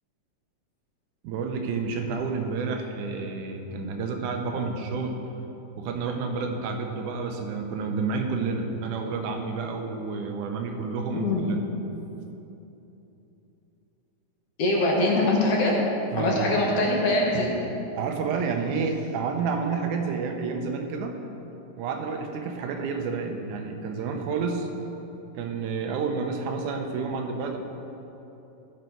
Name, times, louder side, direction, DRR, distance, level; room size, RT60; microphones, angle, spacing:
voice 1, 1.2-5.2 5.8-11.6 16.1-16.6 17.9-21.2 21.8-24.7 25.4-27.6, right 4 dB, 80° right, 4 dB, 2.3 m, -30 dB
voice 2, 11.1-11.5 14.6-15.8 16.2-17.6, left 2 dB, 55° left, -2 dB, 2.1 m, -23 dB
14.5 x 6.7 x 4.6 m, 3.0 s
omnidirectional pair, 3.6 m